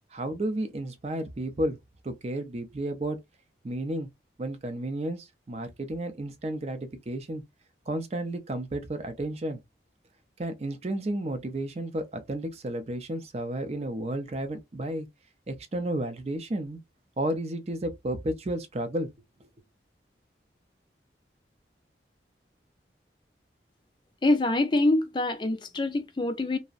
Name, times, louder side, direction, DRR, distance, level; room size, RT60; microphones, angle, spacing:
voice 1, 0.1-1.8 2.0-3.2 3.6-4.1 4.4-7.4 7.9-9.6 10.4-15.1 15.5-16.8 17.2-19.1 19.4-19.5, right 1 dB, 35° right, 0.4 m, -32 dB
voice 2, 24.2-26.6, left 2 dB, 25° left, 0.4 m, -25 dB
2.5 x 2.0 x 2.4 m
head